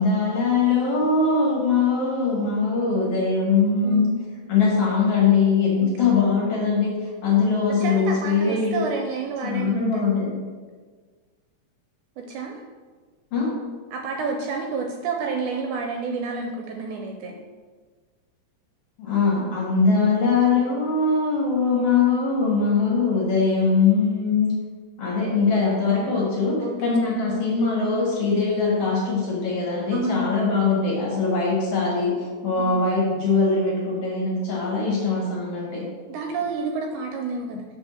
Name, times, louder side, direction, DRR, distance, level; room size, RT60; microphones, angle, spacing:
voice 1, 0.0-4.1 4.5-8.8 9.4-10.4 13.3-13.5 19.0-24.5 25.0-35.8, left 4 dB, 55° left, -3 dB, 2.1 m, -22 dB
voice 2, 3.8-4.1 5.8-5.9 7.8-10.2 12.2-12.6 13.9-17.4 26.6-26.8 29.9-30.5 32.6-32.7 36.1-37.8, right 4 dB, 75° right, 2 dB, 1.9 m, -30 dB
6.3 x 4.4 x 6.2 m, 1.5 s
omnidirectional pair, 3.9 m